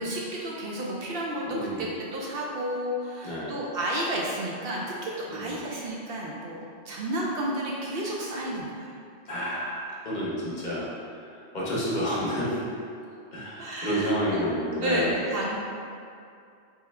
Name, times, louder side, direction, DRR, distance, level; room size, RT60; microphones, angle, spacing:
voice 1, 0.0-9.0 13.6-14.4 14.8-15.6, right 1 dB, 65° right, -3 dB, 0.7 m, -31 dB
voice 2, 1.5-1.9 3.2-3.5 5.3-5.6 9.3-10.9 11.3-12.6 13.3-15.1, equal, 45° left, -7 dB, 0.8 m, -30 dB
3.5 x 3.1 x 3.3 m, 2.5 s
omnidirectional pair, 1.2 m